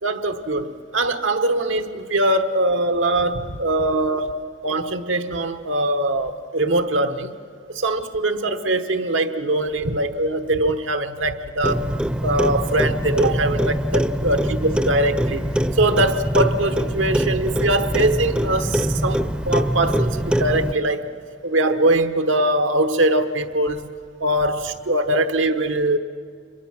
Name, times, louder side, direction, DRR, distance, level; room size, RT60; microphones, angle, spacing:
voice 1, 0.0-4.4 4.6-7.3 7.7-11.9 12.2-21.1 21.4-23.9 24.2-26.0, right 1 dB, 85° right, 8 dB, 1.1 m, -22 dB
Clock, 11.6-20.7, equal, 5° right, 0.5 m, -23 dB
26.5 x 23.0 x 6.0 m, 2.2 s
head